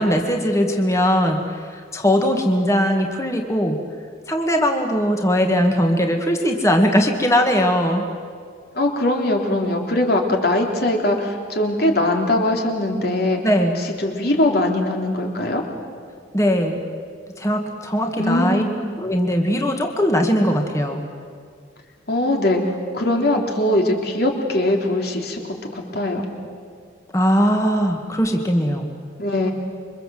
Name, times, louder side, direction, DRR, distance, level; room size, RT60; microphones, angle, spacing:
voice 1, 0.0-3.8 4.3-8.1 13.4-13.8 16.3-16.8 17.4-18.6 19.0-21.0 27.1-28.9, equal, 15° left, 3 dB, 1.9 m, -20 dB
voice 2, 8.7-13.4 13.8-15.6 18.2-18.7 22.1-26.3 29.2-29.5, left 1 dB, 55° left, 1 dB, 3.4 m, -21 dB
28.0 x 24.5 x 7.7 m, 2.1 s
head